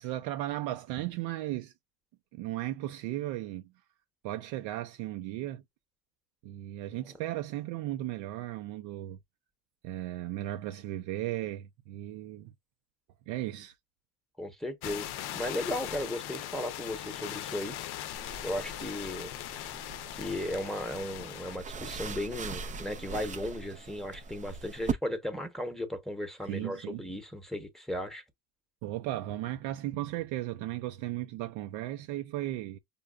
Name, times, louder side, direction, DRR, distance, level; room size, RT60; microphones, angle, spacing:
voice 1, 0.0-1.7 2.3-3.7 4.2-5.6 6.4-9.2 9.8-12.5 13.3-13.8 26.4-27.1 28.8-32.8, right 14 dB, 80° right, 0.6 m, -36 dB
voice 2, 14.4-15.1 15.3-17.8 18.1-19.7 20.1-28.2, left 1 dB, ahead, 0.9 m, -36 dB
sound 1, 14.8-21.6, left 12 dB, 60° left, 0.6 m, -40 dB
sound 2, 18.2-24.9, right 5 dB, 20° right, 0.3 m, -40 dB
5.2 x 2.3 x 2.3 m
cardioid pair, 110°, 44 cm